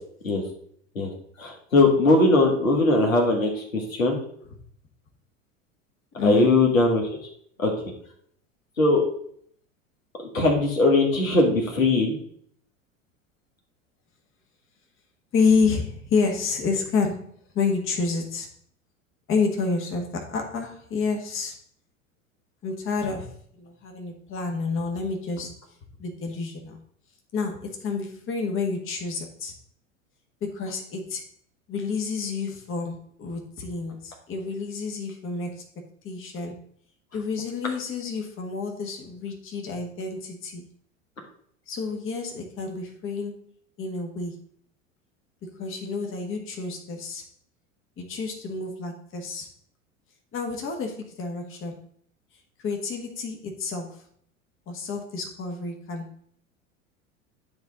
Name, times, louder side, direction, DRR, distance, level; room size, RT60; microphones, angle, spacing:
voice 1, 1.4-4.2 6.2-7.1 7.6-7.7 8.8-9.0 10.3-12.2, left 2 dB, 85° left, 0 dB, 1.9 m, -20 dB
voice 2, 6.1-6.6 15.3-18.5 19.3-21.6 22.6-25.6 26.0-26.8 27.3-29.5 30.4-31.3 31.7-35.6 36.0-36.6 37.1-40.6 41.7-43.4 43.8-44.4 45.5-47.2 48.0-49.5 50.3-51.8 52.6-54.0 54.7-56.1, left 4 dB, 30° left, 2 dB, 1.5 m, -29 dB
10.5 x 3.5 x 4.0 m, 0.62 s
figure-of-eight pair, 80°, 39 cm